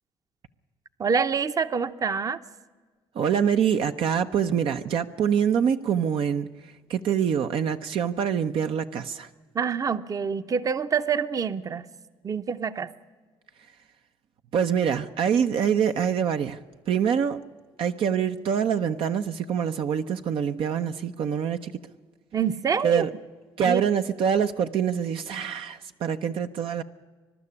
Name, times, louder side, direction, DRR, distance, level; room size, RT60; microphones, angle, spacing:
voice 1, 1.0-2.4 9.5-11.8 12.2-12.9 22.3-23.0 23.7-23.8, right 6 dB, 35° right, 0.9 m, -26 dB
voice 2, 3.1-6.5 6.9-9.3 14.5-16.6 16.9-17.4 17.8-21.7 22.8-23.1 23.6-26.8, right 8 dB, 65° right, 0.8 m, -25 dB
22.0 x 12.0 x 9.7 m
supercardioid pair, 80°, 10 cm